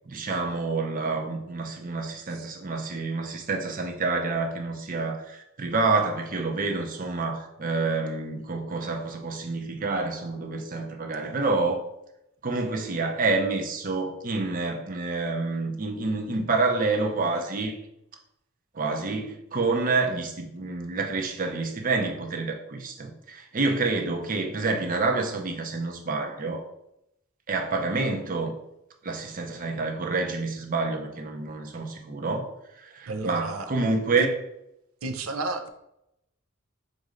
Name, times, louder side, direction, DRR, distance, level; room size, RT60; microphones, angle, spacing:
voice 1, 0.1-11.8 12.4-17.8 18.7-26.6 27.5-28.5 29.0-32.5 32.8-34.3, right 3 dB, 40° right, 3 dB, 0.7 m, -28 dB
voice 2, 33.1-33.7 34.2-34.3 35.0-35.7, right 3 dB, 90° right, 7 dB, 0.6 m, -31 dB
4.2 x 2.6 x 4.9 m, 0.83 s
head